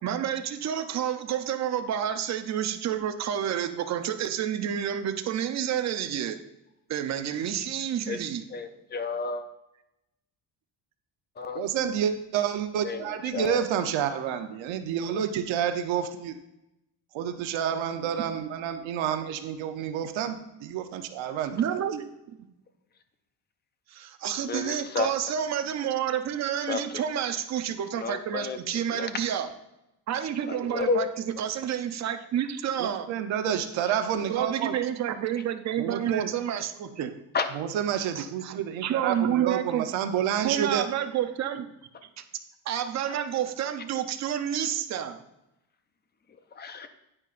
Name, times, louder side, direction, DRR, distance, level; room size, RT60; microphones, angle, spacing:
voice 1, 0.0-6.4 6.9-8.4 21.5-22.1 22.4-22.5 23.9-29.5 30.1-33.1 34.3-37.1 38.2-39.8 40.4-41.7 42.2-42.3 42.7-45.2, right 9 dB, 40° right, 8 dB, 0.6 m, -29 dB
voice 2, 8.5-9.4 11.4-11.6 12.8-13.1 13.3-13.6 24.5-25.1 26.7-26.8 27.9-29.1 30.5-31.1 37.3-37.5 46.6-46.9, left 4 dB, 25° left, 9 dB, 0.4 m, -31 dB
voice 3, 11.5-16.4 17.1-21.8 32.8-34.8 35.8-36.3 37.5-40.9, right 9 dB, 90° right, 7 dB, 0.9 m, -29 dB
9.6 x 9.0 x 2.5 m, 0.90 s
cardioid pair, 180°, 45 cm